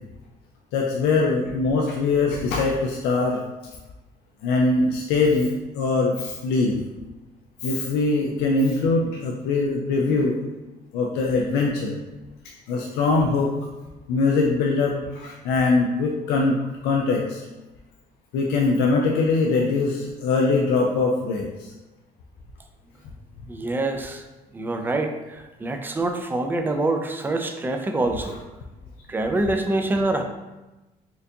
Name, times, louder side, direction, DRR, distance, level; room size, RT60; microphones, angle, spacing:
voice 1, 0.7-3.4 4.4-6.8 7.6-10.4 10.9-12.0 12.7-13.5 14.1-17.4 18.3-21.7 28.2-28.4, left 3 dB, 90° left, 0 dB, 0.4 m, -22 dB
voice 2, 23.5-24.2 24.5-28.4 29.1-30.2, right 2 dB, 10° right, 5 dB, 0.3 m, -25 dB
4.3 x 2.5 x 2.7 m, 1.1 s
cardioid pair, 110°, 17 cm